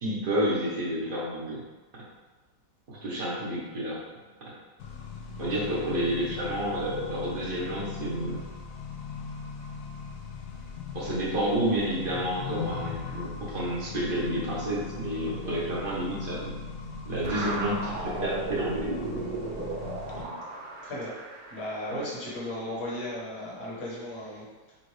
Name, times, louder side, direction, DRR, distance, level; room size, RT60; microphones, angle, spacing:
voice 1, 0.0-1.6 2.9-4.0 5.4-8.4 10.9-16.5 17.1-18.9 20.1-20.3 21.9-22.0, right 1 dB, 40° right, -6 dB, 1.0 m, -30 dB
Accelerating revving vroom, 4.8-20.2, left 5 dB, 70° left, 0.8 m, -39 dB
sound 1, 17.2-22.3, right 2 dB, 75° right, 1.2 m, -35 dB
voice 2, 20.8-21.2 21.5-24.7, left 1 dB, 40° left, -7 dB, 1.4 m, -36 dB
5.3 x 2.5 x 3.2 m, 1.3 s
omnidirectional pair, 1.8 m